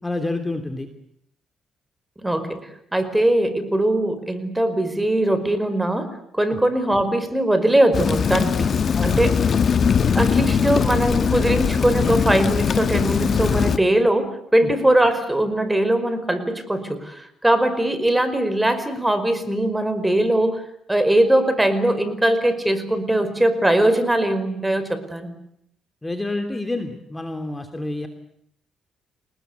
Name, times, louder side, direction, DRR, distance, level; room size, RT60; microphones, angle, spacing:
voice 1, 0.0-0.9 6.5-6.6 8.9-9.2 14.6-14.7 26.0-28.1, left 2 dB, 15° left, 7 dB, 3.1 m, -28 dB
voice 2, 2.2-8.7 9.0-9.4 10.1-20.6 20.9-25.3, right 1 dB, 10° right, 11 dB, 5.2 m, -21 dB
Rain, 7.9-13.8, left 6 dB, 50° left, 1.6 m, -20 dB
30.0 x 20.0 x 8.3 m, 0.71 s
cardioid pair, 90°, 0 cm